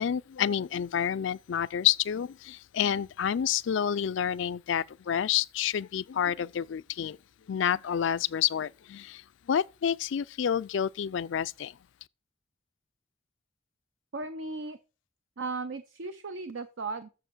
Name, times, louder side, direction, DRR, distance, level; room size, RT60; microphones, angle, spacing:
voice 1, 0.0-7.2 7.5-11.8, left 9 dB, 65° left, 0.4 m, -29 dB
voice 2, 14.1-14.8 15.4-17.1, right 3 dB, 70° right, 0.7 m, -36 dB
7.7 x 7.1 x 6.1 m
head